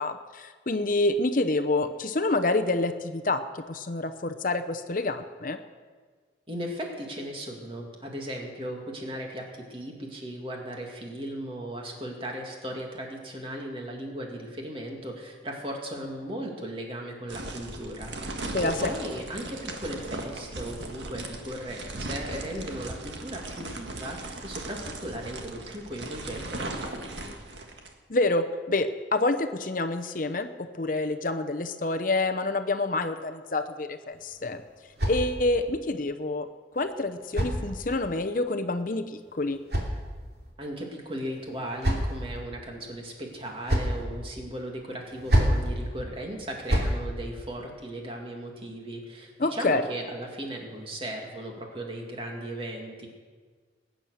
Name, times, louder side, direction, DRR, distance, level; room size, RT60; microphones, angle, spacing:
voice 1, 0.0-5.6 18.5-18.8 28.1-34.6 35.1-36.5 36.7-39.6 49.4-49.8, left 2 dB, 45° left, 8 dB, 0.7 m, -27 dB
voice 2, 6.5-27.4 40.6-53.1, right 1 dB, 30° right, 0 dB, 2.3 m, -37 dB
sound 1, 17.3-27.9, right 2 dB, 75° right, 1.7 m, -38 dB
sound 2, 34.1-35.7 36.7-38.2 39.2-40.5 41.3-42.4 43.3-44.0 45.0-45.7 46.4-47.0, equal, 60° right, 2.9 m, -29 dB
20.5 x 9.6 x 6.5 m, 1.5 s
head